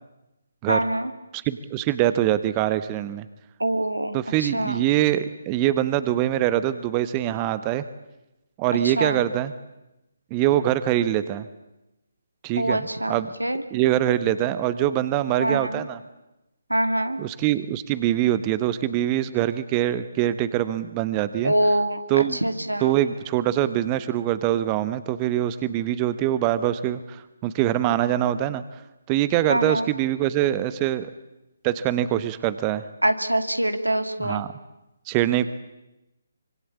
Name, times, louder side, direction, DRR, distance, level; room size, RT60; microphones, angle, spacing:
voice 1, 0.7-1.1 3.6-4.8 8.8-9.2 12.6-13.6 15.4-15.8 16.7-17.2 21.4-22.9 29.5-29.9 33.0-34.4, right 1 dB, 85° right, 9 dB, 2.5 m, -24 dB
voice 2, 1.3-3.3 4.1-7.8 8.6-9.5 10.3-11.5 12.4-13.3 13.7-16.0 17.2-21.5 22.1-22.4 22.8-28.6 29.1-31.1 31.6-32.8 34.2-34.5 35.1-35.5, right 12 dB, 20° right, 14 dB, 1.0 m, -24 dB
25.0 x 24.5 x 8.6 m, 0.94 s
figure-of-eight pair, 140°, 0 cm